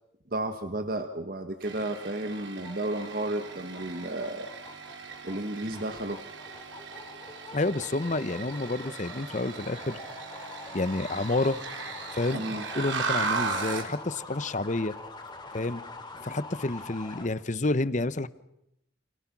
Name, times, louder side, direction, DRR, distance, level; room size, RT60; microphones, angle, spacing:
voice 1, 0.3-4.5 5.2-6.2 12.3-12.7, right 1 dB, 50° right, 7 dB, 1.5 m, -32 dB
sound 1, 1.6-13.9, right 4 dB, 75° right, 4.6 m, -37 dB
sound 2, 2.3-17.3, left 3 dB, 25° left, 3.0 m, -45 dB
voice 2, 7.5-10.0 10.7-11.6 12.1-14.9 15.5-15.8 16.2-18.3, left 2 dB, 40° left, 16 dB, 0.9 m, -29 dB
29.5 x 27.5 x 6.1 m, 0.80 s
head